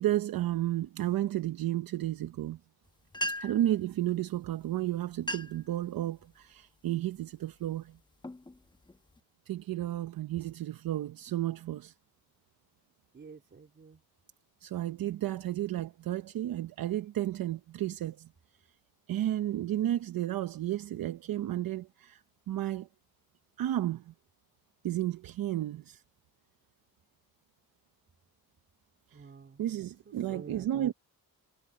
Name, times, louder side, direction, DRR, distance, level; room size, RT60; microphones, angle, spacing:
voice 1, 0.0-2.6 3.4-8.0 9.5-11.9 14.6-18.3 19.1-22.9 23.6-24.1 24.8-26.0 29.1-29.3 29.6-30.9, right 13 dB, 65° right, 0.9 m, -32 dB
sound 1, 2.9-3.0 3.1-3.7 4.6-4.7 5.1-5.7 6.2-6.5 7.2-7.4 8.0-9.2, equal, 10° left, 1.1 m, -38 dB
voice 2, 13.1-14.0 29.1-29.6 30.1-30.9, right 5 dB, 30° right, 3.8 m, -48 dB
cardioid pair, 145°, 37 cm